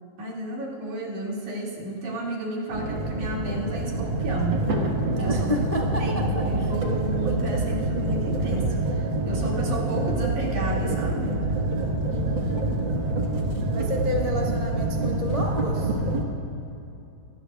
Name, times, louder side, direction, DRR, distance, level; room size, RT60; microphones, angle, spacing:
voice 1, 0.2-4.7 5.1-5.6 6.0-11.4, right 1 dB, 90° right, -3 dB, 3.9 m, -32 dB
sound 1, 2.7-16.2, right 2 dB, 50° right, 1.8 m, -26 dB
voice 2, 5.1-6.2 6.6-6.7 12.1-12.6 13.7-15.9, left 1 dB, 30° left, -3 dB, 0.7 m, -31 dB
24.5 x 19.0 x 2.4 m, 2.7 s
omnidirectional pair, 3.3 m